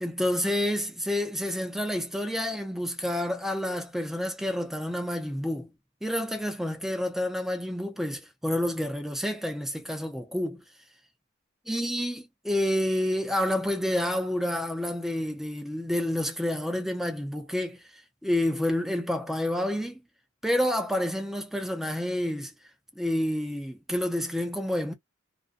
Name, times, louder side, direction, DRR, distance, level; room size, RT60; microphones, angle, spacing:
voice 1, 0.0-5.7 6.0-10.6 11.7-17.8 18.2-20.0 20.4-22.5 23.0-24.9, left 1 dB, ahead, 0.5 m, -29 dB
2.5 x 2.1 x 2.4 m
head